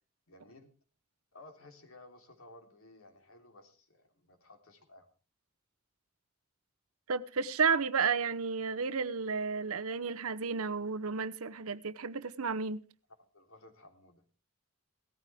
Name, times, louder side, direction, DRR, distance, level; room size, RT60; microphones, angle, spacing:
voice 1, 0.3-0.7 1.3-5.1 13.2-14.2, left 2 dB, 75° left, 3.5 m, -56 dB
voice 2, 7.1-12.8, right 5 dB, 80° right, 0.9 m, -32 dB
18.0 x 14.0 x 3.5 m
head